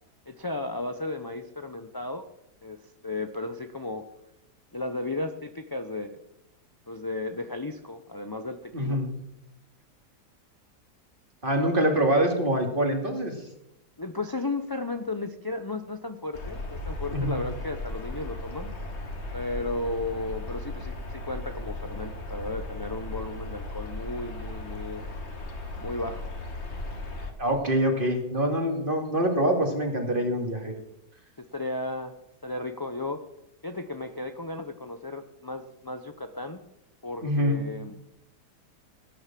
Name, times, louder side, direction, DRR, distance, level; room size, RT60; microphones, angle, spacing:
voice 1, 0.3-2.3 2.6-2.8 3.0-4.0 4.7-6.2 6.9-9.0 14.0-18.7 19.3-25.1 25.8-26.3 31.4-32.1 32.4-33.2 33.6-36.6 37.0-38.0, left 2 dB, 25° left, 7 dB, 0.5 m, -34 dB
voice 2, 8.7-9.2 11.4-13.5 17.1-17.4 27.4-30.7 37.2-37.6, right 1 dB, 30° right, 3 dB, 2.9 m, -25 dB
sound 1, 16.3-27.3, left 2 dB, 40° left, 2.1 m, -36 dB
17.5 x 10.5 x 7.5 m, 0.84 s
omnidirectional pair, 1.8 m